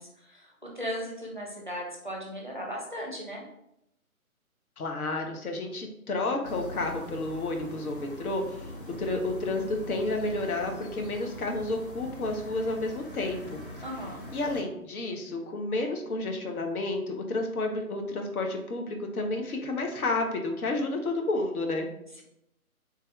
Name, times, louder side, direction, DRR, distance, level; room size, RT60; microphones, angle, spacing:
voice 1, 0.0-3.4 13.8-14.3, equal, 35° right, -2 dB, 0.4 m, -37 dB
voice 2, 4.8-8.7 9.0-13.6 14.3-21.9, left 2 dB, 80° left, 3 dB, 0.8 m, -31 dB
sound 1, 6.4-14.6, left 1 dB, 40° left, 0.6 m, -43 dB
3.4 x 2.6 x 2.2 m, 0.79 s
hypercardioid pair, 170°, 44 cm